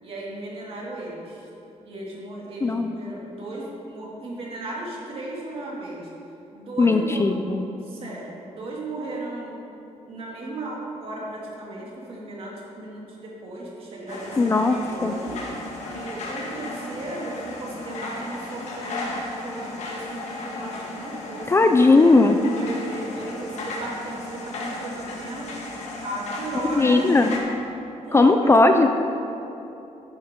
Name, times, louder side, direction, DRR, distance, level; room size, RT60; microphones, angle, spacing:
voice 1, 0.0-1.5 1.8-6.1 6.5-7.3 7.8-9.6 10.0-15.4 15.8-19.1 19.4-21.7 22.4-25.5 26.0-27.0 28.0-28.9, right 2 dB, 50° right, -4 dB, 2.3 m, -35 dB
voice 2, 2.6-2.9 6.8-7.6 14.4-15.2 21.5-22.4 26.8-27.4 28.1-28.9, left 3 dB, 20° left, 6 dB, 0.4 m, -18 dB
sound 1, 14.1-27.4, left 2 dB, 70° left, 1.7 m, -35 dB
11.0 x 9.3 x 3.7 m, 2.9 s
cardioid pair, 145°, 12 cm